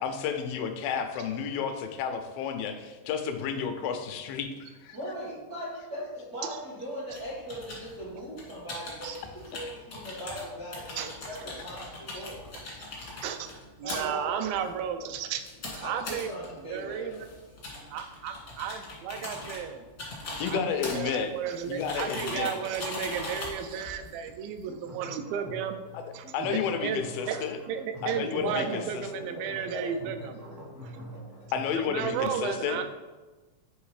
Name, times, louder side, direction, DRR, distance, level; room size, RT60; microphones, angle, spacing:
voice 1, 0.0-5.0 11.5-11.6 20.4-21.3 21.7-22.5 25.9-26.0 26.3-27.6 28.0-29.3 31.5-32.8, left 7 dB, 90° left, 7 dB, 2.4 m, -31 dB
voice 2, 4.9-12.4 13.8-14.4 15.8-17.5 28.3-28.8 29.4-29.5 29.7-29.9, equal, 65° right, -8 dB, 0.9 m, -39 dB
sound 1, 7.1-24.6, left 2 dB, 60° left, 0.9 m, -41 dB
voice 3, 13.8-15.4 15.7-16.3 16.7-17.3 17.9-19.8 20.4-25.8 26.1-30.4 30.8-30.9 31.8-32.8, right 8 dB, 85° right, 8 dB, 2.3 m, -34 dB
sound 2, 24.7-32.2, equal, ahead, 0.3 m, -45 dB
7.2 x 3.2 x 4.8 m, 1.2 s
omnidirectional pair, 4.1 m